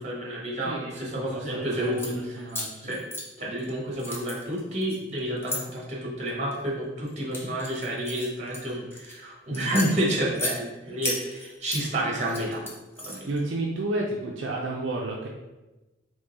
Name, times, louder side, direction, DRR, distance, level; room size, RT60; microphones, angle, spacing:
voice 1, 0.0-2.4 2.8-3.0 3.4-12.7 13.0-13.3, right 1 dB, 35° right, -3 dB, 1.2 m, -30 dB
voice 2, 0.6-3.0 9.5-9.8 13.3-15.3, right 2 dB, 65° right, -2 dB, 0.5 m, -32 dB
sound 1, 1.8-2.1 2.5-3.7 4.0-5.6 6.3-6.6 7.1-9.1 9.5-10.6 11.0-11.8 12.2-13.4, left 1 dB, 10° left, 0.6 m, -34 dB
3.7 x 3.2 x 4.0 m, 1.1 s
head